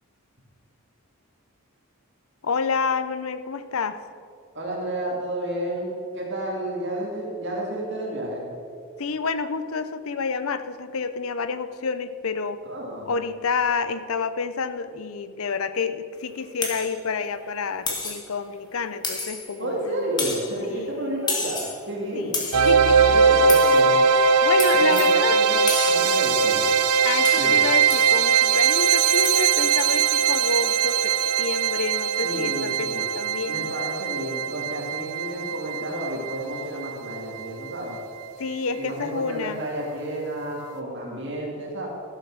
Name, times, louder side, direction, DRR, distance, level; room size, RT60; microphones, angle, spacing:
voice 1, 2.4-4.0 9.0-12.6 13.1-20.1 20.7-21.1 22.1-22.3 22.6-23.1 24.4-25.4 27.0-33.7 38.4-39.6, left 5 dB, 70° left, 11 dB, 0.6 m, -29 dB
voice 2, 4.5-8.4 12.6-13.1 19.6-22.4 23.0-24.0 24.7-26.7 27.4-27.6 32.2-33.0 33.5-38.0 38.7-41.9, right 1 dB, 55° right, -3 dB, 2.2 m, -31 dB
sound 1, 16.6-16.9 17.9-18.3 19.0-19.6 20.2-20.5 21.3-21.8 22.3-22.7 23.5-23.8 24.6-25.1 25.7-26.1 27.2-27.5 27.9-28.2 29.2-29.5, left 3 dB, 20° left, 1.5 m, -30 dB
sound 2, 22.5-37.5, right 6 dB, 85° right, 0.5 m, -21 dB
13.0 x 7.6 x 6.2 m, 2.4 s
head